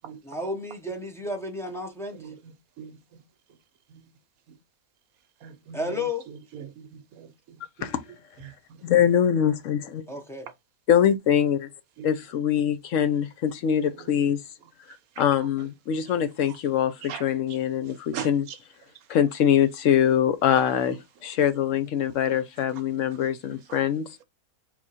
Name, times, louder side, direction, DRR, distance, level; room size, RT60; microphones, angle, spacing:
voice 1, 0.2-2.2 5.7-6.3 10.1-10.4, left 2 dB, 5° left, 0.5 m, -32 dB
voice 2, 2.1-3.2 3.9-4.1 4.5-4.6 5.4-7.9 8.4-8.5 12.0-12.1 13.8-14.2 15.6-15.7 16.5-16.6 17.0-17.2 18.1-18.6 22.2-22.4 22.9-23.0, right 8 dB, 70° right, 1.1 m, -41 dB
voice 3, 8.8-10.0 10.9-11.7 12.0-14.4 15.2-18.4 19.1-21.0 21.2-24.1, left 9 dB, 65° left, 1.0 m, -23 dB
4.2 x 3.0 x 4.1 m
omnidirectional pair, 1.6 m